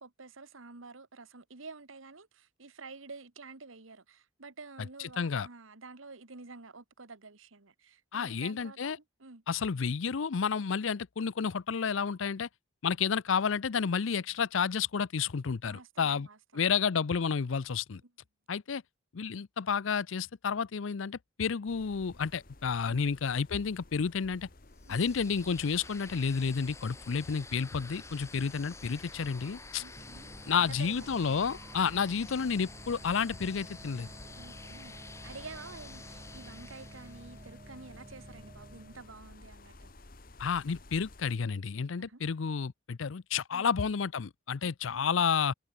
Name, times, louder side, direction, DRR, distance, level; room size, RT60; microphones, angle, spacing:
voice 1, 0.0-8.9 9.2-9.4 15.6-16.6 18.0-18.1 24.8-25.0 29.8-31.1 34.4-39.9 42.0-42.2 43.5-43.7 44.6-45.1, right 3 dB, 90° right, 1.6 m, -49 dB
voice 2, 5.2-5.5 8.1-9.0 9.5-12.5 12.8-16.3 16.5-18.0 18.5-18.8 19.1-24.5 24.9-29.8 30.5-34.1 40.4-45.5, left 6 dB, 80° left, 0.6 m, -31 dB
sound 1, 21.7-41.3, left 2 dB, 45° left, 1.5 m, -54 dB
sound 2, 24.8-37.5, left 3 dB, 15° left, 3.8 m, -50 dB
sound 3, 30.0-39.2, right 1 dB, 30° right, 0.9 m, -52 dB
open air
head